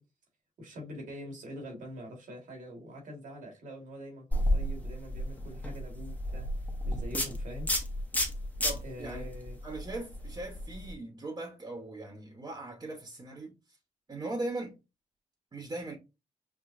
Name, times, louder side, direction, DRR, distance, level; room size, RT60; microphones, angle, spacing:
voice 1, 0.6-6.5 6.8-7.7 8.8-9.6, equal, 85° right, 1.7 m, -44 dB
sound 1, 4.3-10.9, left 1 dB, 10° left, 0.8 m, -32 dB
voice 2, 8.6-9.3 9.6-13.6 14.1-14.8 15.5-16.0, right 2 dB, 30° right, 1.0 m, -39 dB
5.8 x 2.1 x 2.5 m
cardioid pair, 85°, 13 cm